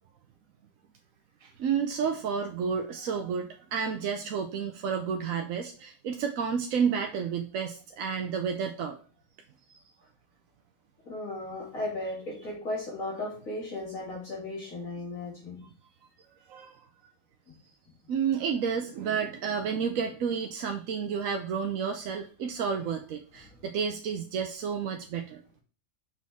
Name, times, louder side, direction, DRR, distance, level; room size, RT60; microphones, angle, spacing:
voice 1, 1.4-9.0 9.7-9.8 15.6-15.7 16.5-16.9 18.1-25.4, right 6 dB, 85° right, 5 dB, 1.0 m, -31 dB
voice 2, 11.1-15.6, left 2 dB, 85° left, -7 dB, 2.8 m, -36 dB
6.2 x 5.4 x 3.5 m, 0.40 s
omnidirectional pair, 1.4 m